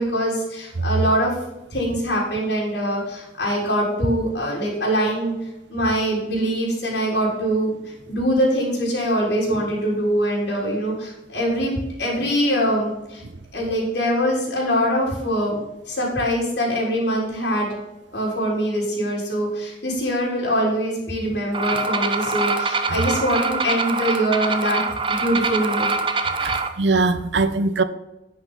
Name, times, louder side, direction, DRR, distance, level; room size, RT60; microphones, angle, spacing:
voice 1, 0.0-1.3 1.7-5.3 5.7-11.7 12.0-13.2 13.5-17.7 18.1-24.8 25.1-25.9, equal, 70° left, 3.7 m, -23 dB
sound 1, 21.5-26.7, right 4 dB, 30° right, 0.8 m, -24 dB
voice 2, 26.4-27.8, right 3 dB, 75° right, 0.7 m, -21 dB
10.5 x 5.9 x 5.4 m
head